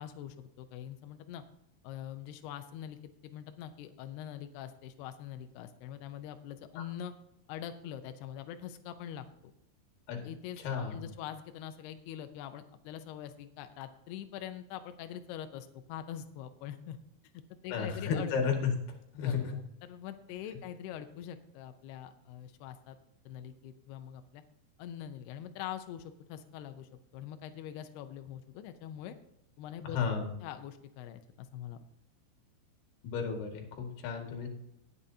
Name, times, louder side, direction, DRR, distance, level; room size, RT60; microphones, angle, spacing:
voice 1, 0.0-1.4 1.8-7.1 7.5-9.5 10.2-10.6 10.9-17.0 17.3-18.3 19.1-23.0 23.3-24.4 24.8-29.2 29.6-31.8, left 10 dB, 90° left, 8 dB, 2.3 m, -44 dB
voice 2, 10.6-11.1 17.7-18.7 19.2-19.6 29.8-30.3 33.0-34.5, left 6 dB, 60° left, 3 dB, 3.6 m, -33 dB
19.0 x 7.9 x 2.8 m, 0.81 s
omnidirectional pair, 5.7 m